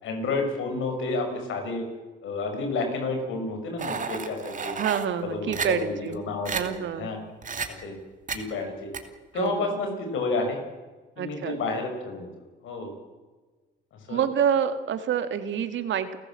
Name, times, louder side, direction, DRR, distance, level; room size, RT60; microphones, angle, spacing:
voice 1, 0.0-1.8 2.2-4.7 5.3-7.2 7.8-8.0 8.3-8.9 9.3-10.6 11.2-12.3 12.6-12.9 14.1-14.2, left 3 dB, 80° left, 4 dB, 6.3 m, -30 dB
sound 1, 3.8-5.1 5.5-5.7 6.1-6.2 6.5-6.6 7.4-7.7 8.3-8.4 8.9-9.0, right 5 dB, 40° right, 2.8 m, -31 dB
voice 2, 4.8-6.2 6.5-7.1 9.3-9.7 11.2-11.6 14.1-16.2, right 8 dB, 70° right, 10 dB, 2.1 m, -27 dB
29.5 x 14.5 x 7.7 m, 1.3 s
cardioid pair, 90°, 20 cm